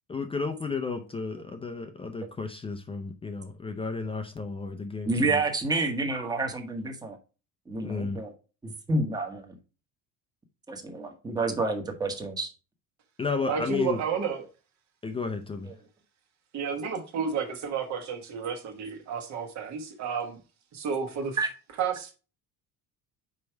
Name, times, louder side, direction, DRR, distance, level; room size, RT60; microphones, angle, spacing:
voice 1, 0.1-5.4 7.8-8.2 13.2-14.0 15.0-15.7, left 4 dB, 15° left, 0.5 m, -32 dB
voice 2, 5.1-7.2 7.7-8.3 8.6-9.5 10.7-12.5 21.4-21.5, right 3 dB, 10° right, 1.0 m, -29 dB
voice 3, 13.5-14.5 16.5-20.4 20.7-21.5 21.8-22.2, right 6 dB, 60° right, 1.4 m, -31 dB
5.3 x 4.5 x 4.4 m
cardioid pair, 160°, 32 cm